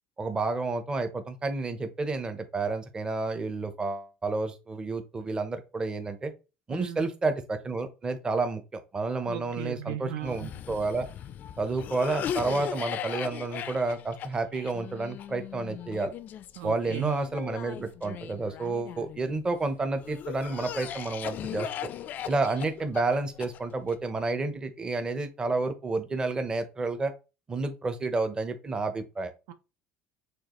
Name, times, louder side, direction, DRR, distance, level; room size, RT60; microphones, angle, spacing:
voice 1, 0.2-6.3 6.7-11.1 11.6-16.1 16.6-21.9 22.3-27.1 27.5-29.3, right 3 dB, 20° right, 0.7 m, -30 dB
voice 2, 6.7-7.1 9.3-10.5 16.6-17.3 29.5-29.6, right 10 dB, 80° right, 0.5 m, -37 dB
Cough, 10.2-19.4 20.0-23.9, left 10 dB, 45° left, 0.3 m, -38 dB
6.4 x 2.3 x 3.0 m
cardioid pair, 115°, 4 cm